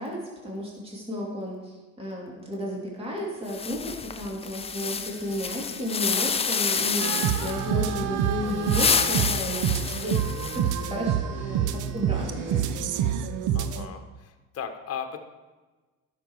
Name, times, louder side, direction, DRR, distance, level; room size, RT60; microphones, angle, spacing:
voice 1, 0.0-10.2 10.5-12.9, left 1 dB, 15° right, -3 dB, 2.7 m, -33 dB
sound 1, 3.5-7.7 8.5-10.8, left 5 dB, 15° left, 0.5 m, -28 dB
sound 2, 4.6-12.6, right 2 dB, 30° right, 3.5 m, -52 dB
sound 3, 7.0-13.9, right 9 dB, 55° right, 0.7 m, -27 dB
voice 2, 13.5-15.2, left 7 dB, 40° left, 6 dB, 1.3 m, -37 dB
11.5 x 6.5 x 4.7 m, 1.3 s
supercardioid pair, 95°, 36 cm